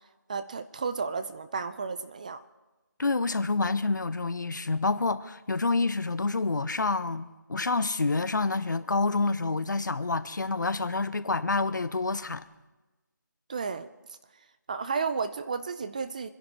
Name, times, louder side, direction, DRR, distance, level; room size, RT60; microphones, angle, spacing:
voice 1, 0.3-2.4 13.5-13.9 14.7-16.3, right 5 dB, 25° right, 0.5 m, -32 dB
voice 2, 3.0-12.4, left 3 dB, 70° left, 0.9 m, -28 dB
24.5 x 10.5 x 4.6 m
figure-of-eight pair, 165°, 11 cm